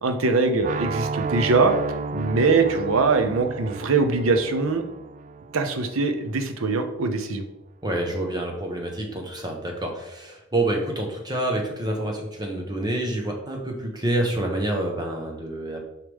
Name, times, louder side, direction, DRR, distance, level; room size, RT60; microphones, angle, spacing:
voice 1, 0.0-1.7 2.1-4.8 5.5-7.4, right 4 dB, 90° right, 7 dB, 0.8 m, -22 dB
sound 1, 0.6-6.5, right 4 dB, 35° right, 0.3 m, -32 dB
voice 2, 7.8-15.8, right 1 dB, 20° right, 1 dB, 1.1 m, -27 dB
6.5 x 4.9 x 3.6 m, 0.91 s
head